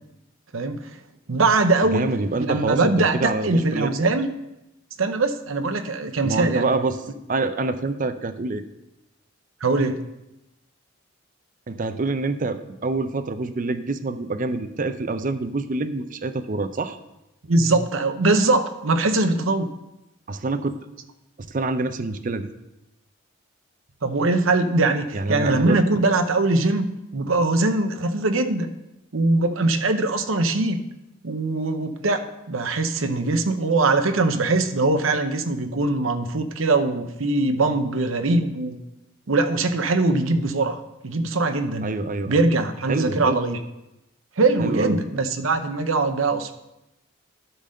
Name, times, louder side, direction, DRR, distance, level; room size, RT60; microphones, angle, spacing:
voice 1, 0.5-0.9 1.3-2.0 2.4-4.3 5.0-6.7 9.6-10.0 17.5-19.7 24.0-26.9 27.1-28.7 29.1-30.8 31.2-32.2 32.5-38.8 39.3-41.9 42.3-43.6 44.4-46.5, right 2 dB, 75° right, 8 dB, 0.8 m, -22 dB
voice 2, 1.9-3.9 6.2-7.0 7.3-8.6 11.7-17.0 20.3-20.8 21.5-22.5 25.1-25.8 41.8-42.4 42.9-43.4 44.6-45.0, right 3 dB, 40° right, 10 dB, 0.5 m, -26 dB
12.0 x 4.0 x 6.4 m, 0.93 s
head